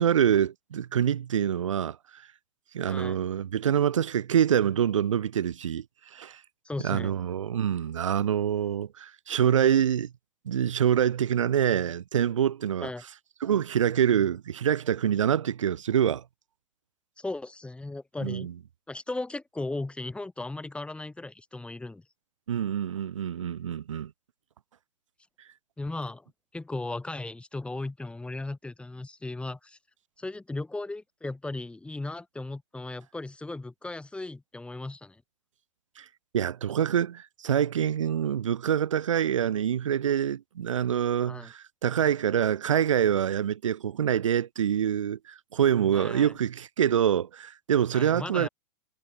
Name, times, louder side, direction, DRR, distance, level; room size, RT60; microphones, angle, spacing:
voice 1, 0.0-2.2 2.7-5.8 6.1-6.4 6.8-10.1 10.5-12.9 13.4-16.2 18.2-18.5 22.5-24.1 36.0-36.1 36.3-48.5, right 9 dB, 85° right, 3.7 m, -26 dB
voice 2, 2.9-3.2 6.7-7.1 12.8-13.0 17.2-18.5 18.9-22.0 25.8-26.3 26.5-29.8 30.2-35.2 41.3-41.5 45.9-46.3 47.9-48.5, left 2 dB, 5° left, 7.3 m, -36 dB
hypercardioid pair, 120°, 16 cm